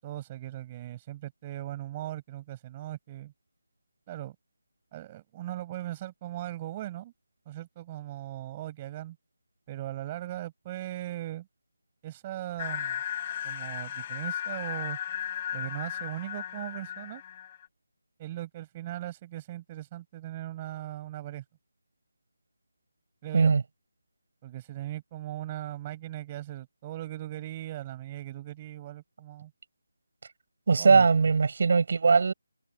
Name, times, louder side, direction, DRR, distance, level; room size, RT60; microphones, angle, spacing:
voice 1, 0.0-3.3 4.1-4.4 4.9-7.1 7.5-9.2 9.7-11.5 12.0-13.0 13.4-15.0 15.5-17.2 18.2-21.4 23.2-23.5 24.4-29.5 30.8-31.1, right 14 dB, 20° right, 7.3 m, -39 dB
sound 1, 12.6-17.7, left 10 dB, 25° left, 5.1 m, -35 dB
voice 2, 30.7-32.3, right 5 dB, 50° right, 6.3 m, -20 dB
figure-of-eight pair, 165°, 0 cm